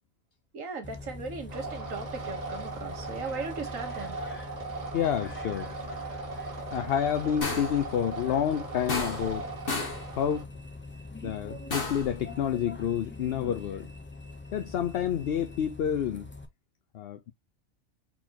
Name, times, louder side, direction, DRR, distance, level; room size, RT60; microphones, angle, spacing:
voice 1, 0.5-4.5, right 4 dB, 75° right, 1.6 m, -38 dB
Bus, 0.8-16.5, left 3 dB, 15° left, 0.4 m, -43 dB
sound 1, 1.5-10.4, right 4 dB, 30° right, 1.4 m, -39 dB
voice 2, 4.9-5.7 6.7-9.5 10.2-10.5 11.2-13.9 14.5-16.3 16.9-17.3, left 9 dB, 60° left, 0.7 m, -29 dB
sound 2, 7.4-7.9 8.9-9.4 9.7-10.1 11.7-12.1, left 3 dB, 45° left, 1.4 m, -32 dB
4.3 x 4.1 x 2.8 m
omnidirectional pair, 1.4 m